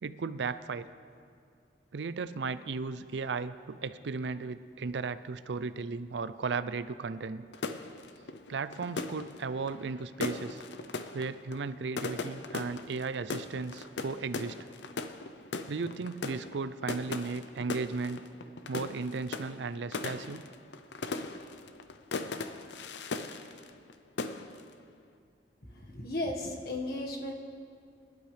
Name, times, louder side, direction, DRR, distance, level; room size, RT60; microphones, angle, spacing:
voice 1, 0.0-0.8 1.9-7.4 8.5-10.6 11.1-14.7 15.7-18.2 18.7-20.4, right 4 dB, 80° right, 14 dB, 0.5 m, -35 dB
sound 1, 7.5-23.9 24.2-24.7, left 3 dB, 80° left, 0.6 m, -39 dB
voice 2, 25.7-27.3, left 1 dB, 60° left, 1 dB, 1.6 m, -35 dB
21.0 x 12.0 x 3.3 m, 2.3 s
head